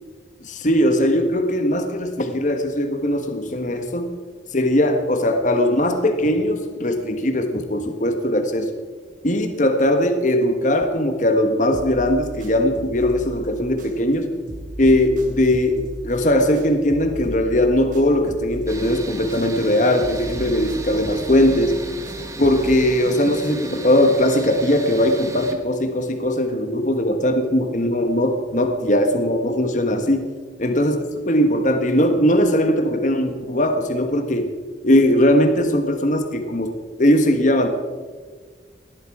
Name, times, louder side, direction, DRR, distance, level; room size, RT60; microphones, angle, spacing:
voice 1, 0.4-4.1 4.5-8.7 9.2-14.3 14.8-15.8 16.0-21.7 22.4-30.2 30.6-30.9 31.2-34.5 34.8-36.7 37.0-37.7, left 1 dB, 45° left, 6 dB, 1.4 m, -19 dB
sound 1, 11.7-14.2 14.5-19.7 20.0-22.8, equal, 45° right, 3.4 m, -36 dB
sound 2, 18.7-25.5, right 2 dB, 15° right, 1.3 m, -36 dB
19.0 x 12.5 x 4.8 m, 1.5 s
head